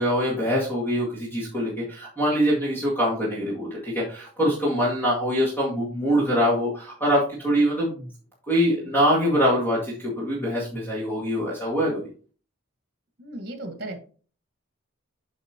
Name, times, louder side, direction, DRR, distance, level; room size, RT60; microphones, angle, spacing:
voice 1, 0.0-8.1 8.5-12.1, equal, 10° left, -6 dB, 2.0 m, -24 dB
voice 2, 13.2-14.0, right 1 dB, 50° right, 6 dB, 1.6 m, -35 dB
8.0 x 5.3 x 3.0 m, 0.40 s
head